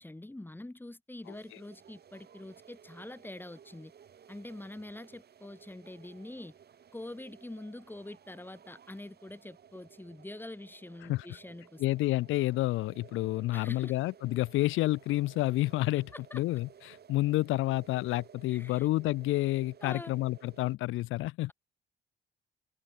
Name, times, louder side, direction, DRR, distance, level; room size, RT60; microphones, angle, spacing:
voice 1, 0.0-3.9 4.3-6.5 6.9-11.8 13.5-14.0 16.3-16.4 18.5-18.9 19.8-20.1, left 1 dB, 10° left, 2.9 m, -45 dB
sound 1, 1.2-20.8, right 8 dB, 55° right, 3.3 m, -57 dB
voice 2, 11.8-21.5, left 17 dB, 90° left, 0.7 m, -29 dB
open air
cardioid pair, 90°, 20 cm